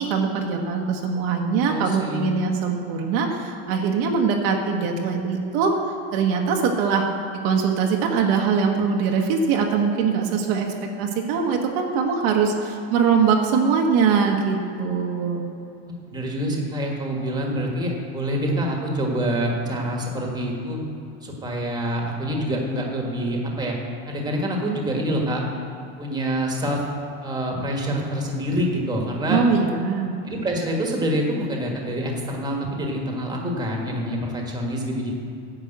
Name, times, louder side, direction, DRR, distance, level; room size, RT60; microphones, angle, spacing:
voice 1, 0.0-7.1 7.4-15.4 29.3-30.1, right 5 dB, 65° right, 1 dB, 1.2 m, -22 dB
voice 2, 1.7-2.3 16.1-20.8 21.2-23.7 24.1-25.4 26.0-26.8 27.2-29.4 30.2-35.1, equal, 10° right, 0 dB, 1.5 m, -26 dB
10.0 x 5.4 x 8.0 m, 2.7 s
cardioid pair, 150°, 32 cm